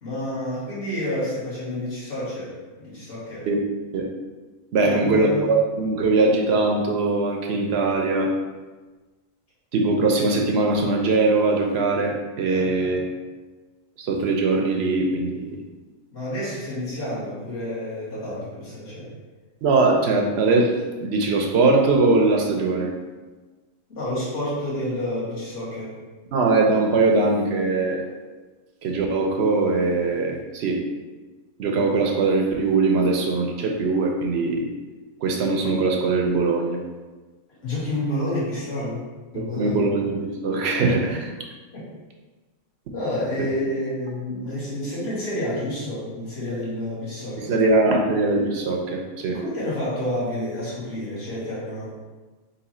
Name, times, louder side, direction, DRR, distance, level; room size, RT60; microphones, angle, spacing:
voice 1, 0.0-3.5 4.8-5.5 12.5-13.0 16.1-19.1 23.9-26.0 37.6-39.8 40.8-41.1 41.7-41.9 42.9-47.5 49.3-51.9, left 1 dB, 50° left, -10 dB, 1.8 m, -29 dB
voice 2, 4.7-8.3 9.7-13.0 14.0-15.6 19.6-22.9 26.3-28.0 28.8-30.8 31.6-34.7 35.2-36.8 39.3-41.2 47.4-49.4, right 3 dB, 65° right, 2 dB, 0.7 m, -21 dB
3.8 x 2.7 x 4.2 m, 1.2 s
omnidirectional pair, 1.4 m